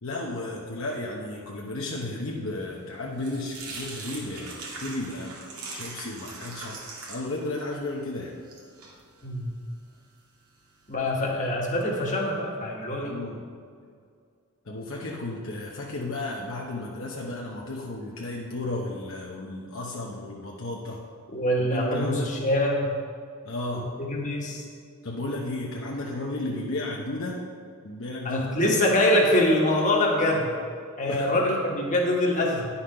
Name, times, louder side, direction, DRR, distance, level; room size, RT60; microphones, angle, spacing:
voice 1, 0.0-5.4 5.7-6.8 7.1-8.3 13.0-13.4 14.6-21.0 21.6-22.3 23.4-23.9 25.0-27.4 27.8-28.8 31.0-31.5, left 2 dB, 60° left, -2 dB, 0.9 m, -33 dB
sound 1, 2.7-10.9, right 3 dB, 85° right, 2.1 m, -42 dB
voice 2, 9.2-9.5 10.9-13.2 21.3-22.9 24.0-24.6 28.2-30.5 31.0-32.7, left 1 dB, 35° left, -1 dB, 1.5 m, -24 dB
10.5 x 5.7 x 5.6 m, 2.2 s
head